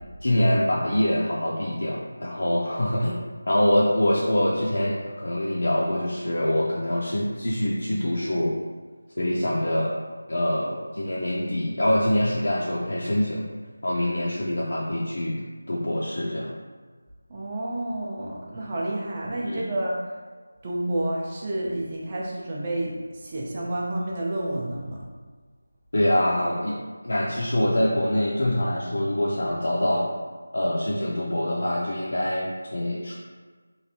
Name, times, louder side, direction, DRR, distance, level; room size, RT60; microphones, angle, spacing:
voice 1, 0.2-3.2 3.5-8.6 9.2-9.9 10.3-13.4 13.8-15.4 15.7-16.5 19.5-19.7 25.9-26.8 27.0-30.1 30.5-33.1, left 1 dB, 65° left, -5 dB, 0.4 m, -24 dB
voice 2, 17.3-20.0 20.6-25.0, right 1 dB, 25° right, -4 dB, 0.5 m, -30 dB
3.1 x 2.5 x 2.7 m, 1.5 s
figure-of-eight pair, 165°, 0 cm